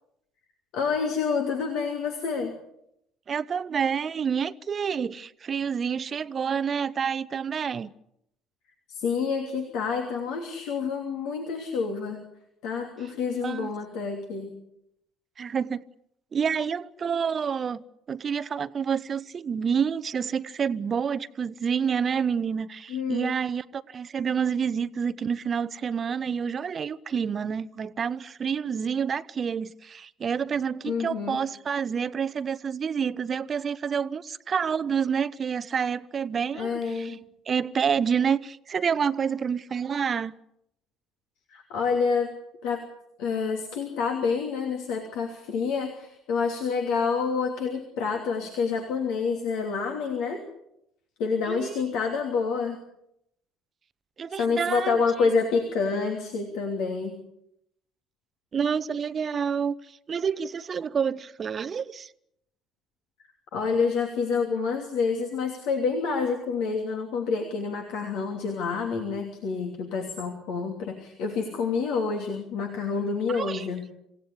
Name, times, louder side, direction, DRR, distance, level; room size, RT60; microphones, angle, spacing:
voice 1, 0.7-2.5 8.9-12.2 12.6-14.5 22.9-23.3 30.9-31.4 36.5-37.2 41.5-42.3 42.6-42.8 43.2-50.4 51.2-52.8 54.3-57.2 63.5-73.8, left 5 dB, 60° left, 3.0 m, -28 dB
voice 2, 3.3-7.9 13.4-13.7 15.4-15.8 16.3-37.2 37.5-40.4 51.5-51.8 54.2-55.0 58.5-62.1 73.3-73.7, right 7 dB, 35° right, 0.9 m, -28 dB
27.5 x 17.0 x 8.4 m
figure-of-eight pair, 55°, 0 cm